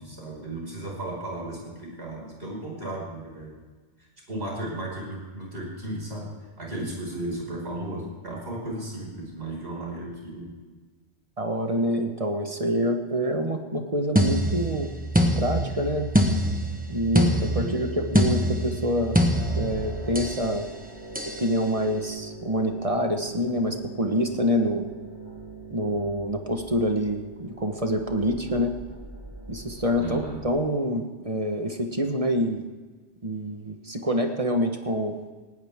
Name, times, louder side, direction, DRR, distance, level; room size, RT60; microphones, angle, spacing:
voice 1, 0.0-3.6 4.3-6.3 6.6-10.5 17.3-17.7 30.0-30.4, right 1 dB, 65° right, -3 dB, 5.9 m, -35 dB
voice 2, 11.4-14.9 15.4-16.1 16.9-19.2 19.6-20.7 21.4-24.9 25.7-28.7 29.5-32.6 33.2-35.2, equal, 30° right, 4 dB, 1.4 m, -26 dB
sound 1, 14.2-20.4 21.2-21.4, equal, 10° right, 1.2 m, -24 dB
sound 2, 19.3-30.6, right 2 dB, 70° left, 5.1 m, -42 dB
19.0 x 18.0 x 3.7 m, 1.3 s
omnidirectional pair, 1.2 m